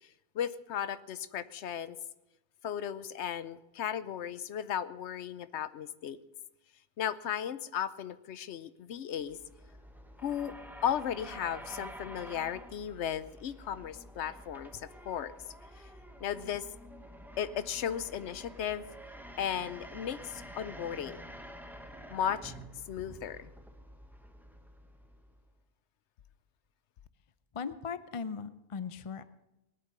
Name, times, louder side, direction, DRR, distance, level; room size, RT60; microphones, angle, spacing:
voice 1, 0.3-2.0 2.6-6.2 7.0-9.4 10.2-10.5 10.8-15.3 15.7-15.9 16.2-16.7 17.4-18.8 19.4-21.3 22.1-22.5 22.9-23.5, left 9 dB, 80° left, 15 dB, 1.0 m, -35 dB
sound 1, 9.2-25.5, equal, ahead, 1.0 m, -49 dB
voice 2, 27.5-29.2, left 6 dB, 40° left, 13 dB, 0.5 m, -38 dB
19.5 x 8.8 x 6.7 m, 0.94 s
omnidirectional pair, 1.2 m